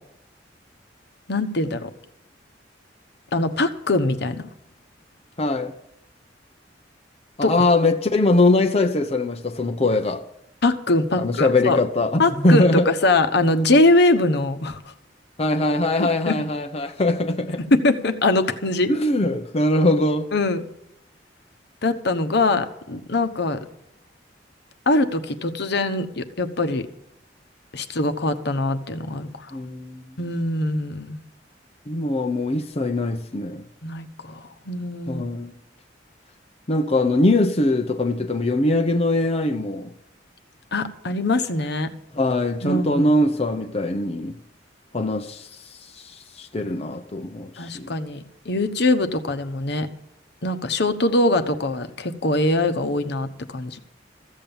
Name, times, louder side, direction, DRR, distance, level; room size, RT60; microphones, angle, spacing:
voice 1, 1.3-1.9 3.3-4.4 7.4-7.5 10.6-11.8 12.2-14.8 16.0-16.4 17.7-18.9 20.3-20.6 21.8-23.6 24.9-26.8 27.7-29.6 30.2-31.2 33.8-35.2 40.7-41.9 42.6-43.1 47.6-49.9 50.4-53.8, left 2 dB, 65° left, 1.1 m, -22 dB
voice 2, 5.4-5.7 7.4-10.2 11.2-12.9 15.4-17.6 18.9-20.3 29.5-30.1 31.9-33.7 35.1-35.5 36.7-39.9 42.1-44.4 44.9-45.5 46.0-47.9, left 2 dB, 35° left, 0.8 m, -22 dB
15.0 x 7.6 x 8.8 m
head